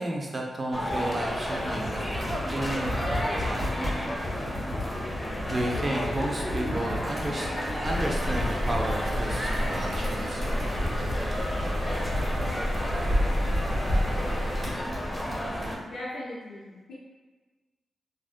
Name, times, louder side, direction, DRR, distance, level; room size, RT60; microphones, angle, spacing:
voice 1, 0.0-3.8 5.5-7.5 7.8-10.4, right 1 dB, 35° right, -1 dB, 0.5 m, -32 dB
sound 1, 0.7-15.8, equal, 15° left, 0.4 m, -32 dB
Computer keyboard, 1.3-15.8, left 1 dB, 65° right, 1.1 m, -36 dB
sound 2, 7.8-14.7, equal, 85° right, 0.7 m, -30 dB
voice 2, 15.8-16.9, left 1 dB, 85° left, -9 dB, 0.5 m, -38 dB
2.5 x 2.0 x 2.4 m, 1.4 s
cardioid pair, 60°, 0 cm